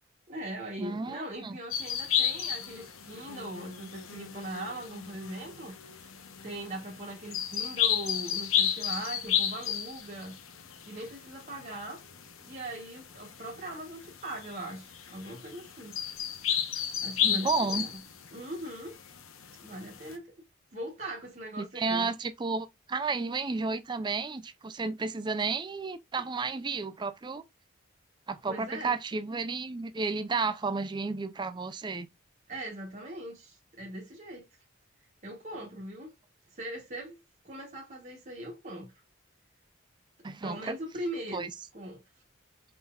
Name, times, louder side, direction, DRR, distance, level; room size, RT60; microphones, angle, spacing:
voice 1, 0.3-5.7 6.0-6.1 6.4-10.4 10.9-12.0 12.5-16.0 17.0-17.9 18.3-19.0 19.6-20.5 20.7-22.1 28.5-29.0 32.5-34.4 35.2-36.1 36.5-38.9 40.2-41.5 41.7-42.0, right 1 dB, 40° right, 1.2 m, -40 dB
voice 2, 0.8-1.6 17.2-17.9 21.6-27.4 28.3-32.1 40.2-40.7 41.3-41.5, right 4 dB, 20° right, 0.4 m, -32 dB
sound 1, 1.7-20.2, left 9 dB, 85° left, 0.9 m, -34 dB
5.5 x 3.9 x 2.4 m
head